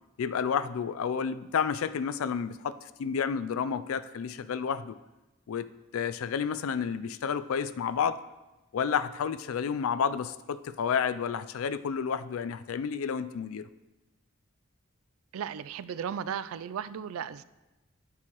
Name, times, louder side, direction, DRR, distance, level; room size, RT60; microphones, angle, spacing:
voice 1, 0.2-4.9 5.5-5.7 5.9-8.2 8.7-13.6, left 7 dB, 80° left, 14 dB, 0.4 m, -30 dB
voice 2, 15.3-17.4, right 8 dB, 80° right, 15 dB, 0.3 m, -35 dB
13.0 x 4.7 x 3.0 m, 1.0 s
head